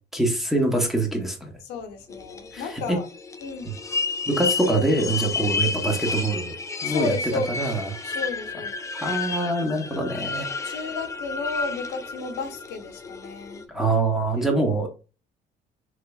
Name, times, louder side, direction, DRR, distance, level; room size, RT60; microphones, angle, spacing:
voice 1, 0.1-1.5 2.5-3.0 4.3-7.1 7.5-7.9 8.9-10.8 13.7-14.9, right 2 dB, ahead, 0.9 m, -25 dB
voice 2, 1.7-3.1 3.4-3.7 6.8-7.7 8.0-8.7 10.6-13.6 14.4-14.5, left 4 dB, 85° left, 0.7 m, -33 dB
sound 1, 2.1-13.6, left 4 dB, 20° left, 0.4 m, -31 dB
3.2 x 3.1 x 2.3 m
cardioid pair, 110°, 17 cm